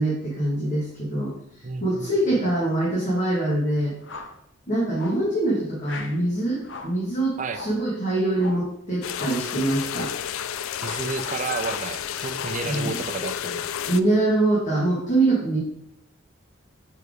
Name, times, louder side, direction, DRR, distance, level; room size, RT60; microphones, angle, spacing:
voice 1, 0.0-4.0 4.7-10.1 12.6-13.0 13.9-15.6, right 2 dB, 35° left, -6 dB, 1.7 m, -24 dB
voice 2, 1.6-2.4 7.4-7.6 10.8-13.7, right 4 dB, 35° right, 9 dB, 0.5 m, -32 dB
sound 1, 4.0-4.4 4.9-5.3 5.8-6.2 6.6-7.0 7.5-7.9 8.3-8.7 9.1-9.5 9.9-10.2 10.8-11.1 11.6-11.9 12.3-12.7, left 3 dB, 60° left, 0.7 m, -39 dB
sound 2, 9.0-14.0, left 9 dB, 85° left, 0.4 m, -31 dB
5.5 x 4.8 x 4.9 m, 0.74 s
head